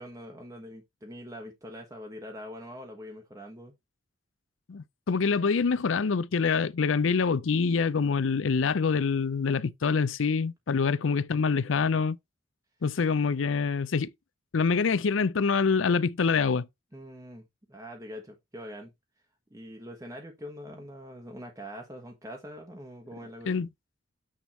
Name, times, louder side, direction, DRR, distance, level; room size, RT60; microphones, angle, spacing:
voice 1, 0.0-3.7 16.9-18.9 19.5-23.5, equal, 15° right, 1.1 m, -43 dB
voice 2, 4.7-12.2 12.8-14.1 14.5-16.7 23.5-23.7, left 5 dB, 80° left, 0.5 m, -25 dB
8.7 x 3.5 x 4.3 m
head